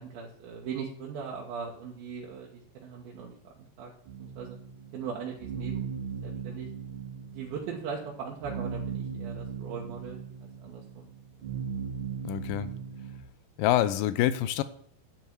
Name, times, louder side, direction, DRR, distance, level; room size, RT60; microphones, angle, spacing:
voice 1, 0.0-3.9 4.2-4.6 4.9-5.8 6.2-6.7 7.3-10.2 10.6-11.1, right 6 dB, 80° right, -2 dB, 3.0 m, -39 dB
sound 1, 4.1-13.2, right 6 dB, 55° right, 2.8 m, -38 dB
voice 2, 12.2-12.7 13.6-14.6, left 13 dB, 80° left, 14 dB, 2.2 m, -26 dB
10.5 x 9.4 x 4.6 m, 0.62 s
omnidirectional pair, 4.3 m